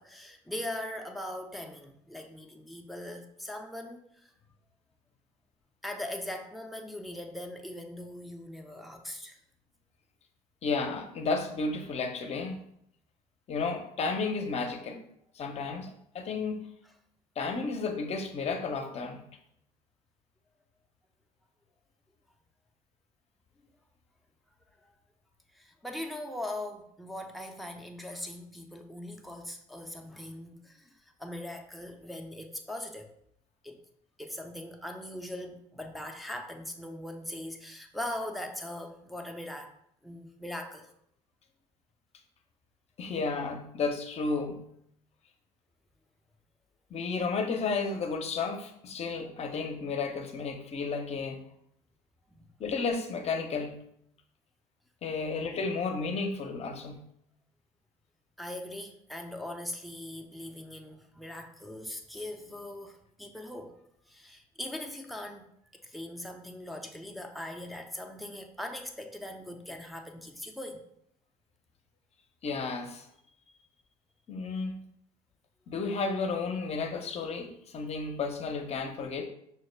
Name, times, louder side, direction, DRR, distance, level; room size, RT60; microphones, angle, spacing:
voice 1, 0.0-4.3 5.8-9.4 24.8-24.9 25.5-30.9 31.2-33.1 33.6-33.8 34.2-39.7 40.0-40.9 52.3-52.4 55.2-55.3 58.4-63.8 64.1-65.5 65.8-70.8, left 1 dB, ahead, 2 dB, 0.5 m, -40 dB
voice 2, 10.6-12.6 13.5-15.0 15.3-16.7 17.4-19.2 43.0-44.7 46.9-51.4 52.6-53.8 55.0-57.1 72.4-73.1 74.3-74.8 75.7-79.3, left 4 dB, 45° left, 5 dB, 0.7 m, -32 dB
5.5 x 2.1 x 3.2 m, 0.72 s
supercardioid pair, 80°, 15 cm